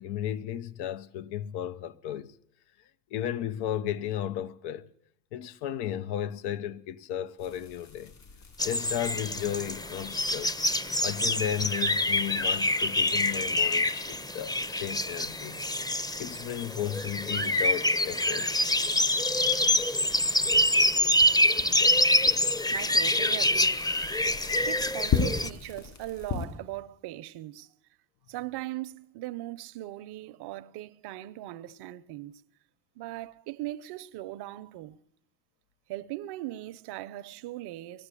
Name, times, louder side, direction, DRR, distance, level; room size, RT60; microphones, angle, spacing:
voice 1, 0.0-2.3 3.1-4.9 5.3-8.1 8.6-10.6 11.0-15.6 16.2-18.6, left 10 dB, 80° left, 0.9 m, -34 dB
sound 1, 7.4-26.5, left 6 dB, 60° left, 6.8 m, -40 dB
sound 2, 8.6-25.5, left 1 dB, 10° left, 0.7 m, -26 dB
voice 2, 22.7-23.8 24.6-27.7 28.3-32.4 33.0-35.0 35.9-38.1, right 16 dB, 80° right, 0.8 m, -39 dB
19.5 x 14.0 x 9.8 m
supercardioid pair, 75°, 39 cm